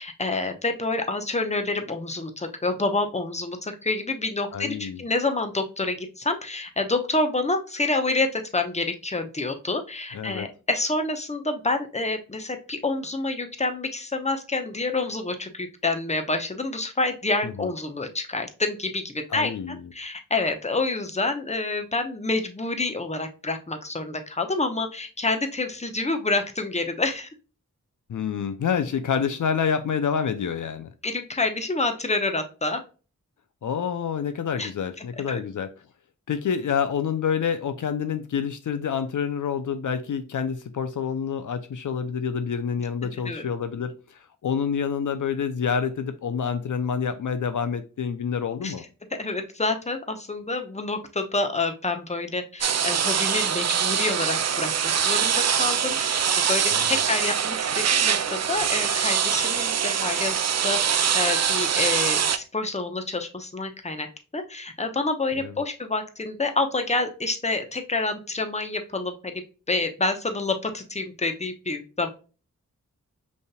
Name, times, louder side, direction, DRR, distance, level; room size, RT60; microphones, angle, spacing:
voice 1, 0.0-27.3 31.0-32.8 34.6-34.7 35.3-35.4 43.2-43.4 48.6-48.7 49.2-56.2 56.5-64.1 64.3-69.4 69.7-72.1, left 3 dB, 20° left, 6 dB, 0.9 m, -28 dB
voice 2, 4.5-5.0 10.1-10.5 17.4-17.7 19.3-19.8 28.1-30.9 33.6-35.7 36.3-48.8 56.7-56.9 65.4-65.5, left 7 dB, 70° left, 9 dB, 0.5 m, -27 dB
sound 1, 52.6-62.4, right 8 dB, 55° right, 0.5 m, -23 dB
5.3 x 3.3 x 2.2 m, 0.34 s
cardioid pair, 55°, 32 cm